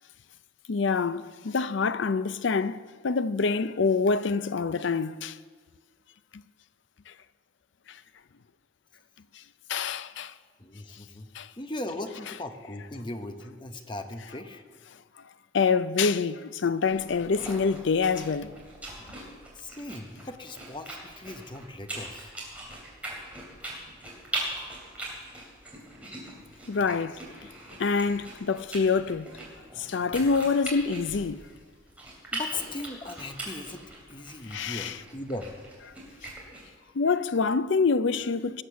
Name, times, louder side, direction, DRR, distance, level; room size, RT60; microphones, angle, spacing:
voice 1, 0.7-5.4 6.3-6.4 7.9-8.0 9.7-10.3 11.3-11.5 15.5-18.5 26.7-27.2 27.8-29.3 29.8-31.4 34.5-34.9 36.9-38.6, left 4 dB, 65° left, 0.5 m, -26 dB
voice 2, 10.6-14.6 19.0-19.1 19.5-22.3 29.8-29.9 32.3-35.5, left 2 dB, 25° left, 0.9 m, -38 dB
sound 1, 16.9-36.7, right 1 dB, 5° right, 3.2 m, -41 dB
18.0 x 8.0 x 6.9 m
head